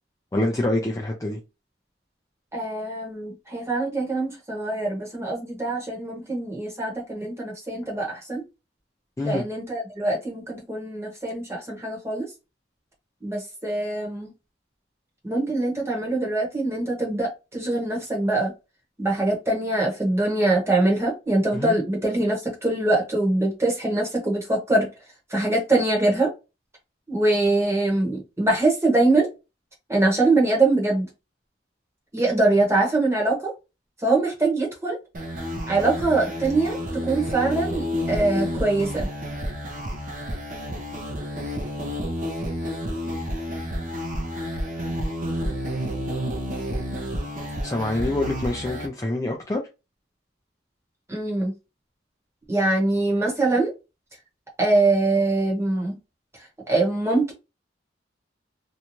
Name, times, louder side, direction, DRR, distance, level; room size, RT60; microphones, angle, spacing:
voice 1, 0.3-1.4 9.2-9.5 21.5-21.8 47.6-49.6, left 1 dB, 15° left, 0.4 m, -26 dB
voice 2, 2.5-8.4 9.2-12.3 13.2-14.3 15.2-18.5 19.0-24.9 25.3-26.3 27.1-29.3 29.9-31.1 32.1-33.5 34.0-35.0 35.7-39.1 51.1-51.5 52.5-53.7 54.6-56.0 56.7-57.3, right 2 dB, 15° right, 1.0 m, -23 dB
sound 1, 35.1-48.9, equal, 40° right, 0.5 m, -30 dB
2.6 x 2.2 x 3.0 m
head